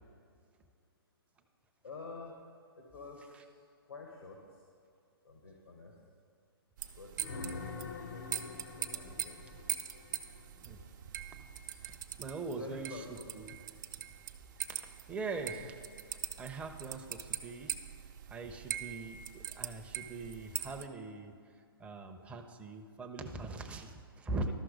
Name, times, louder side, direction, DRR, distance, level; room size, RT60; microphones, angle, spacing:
voice 1, 1.8-3.6 3.9-4.6 5.2-6.0 6.9-9.6 12.5-13.3, left 3 dB, 80° left, 0 dB, 1.2 m, -49 dB
sound 1, 6.8-20.9, right 10 dB, 50° right, 0.6 m, -43 dB
sound 2, 7.2-11.0 15.5-15.7, left 5 dB, 55° left, 0.6 m, -46 dB
voice 2, 11.9-13.0 13.4-13.5 15.1-15.8 16.1-17.8 18.3-21.3 21.8-24.5, right 3 dB, 10° right, 4 dB, 0.6 m, -41 dB
12.5 x 5.9 x 5.0 m, 2.4 s
hypercardioid pair, 125°, 13 cm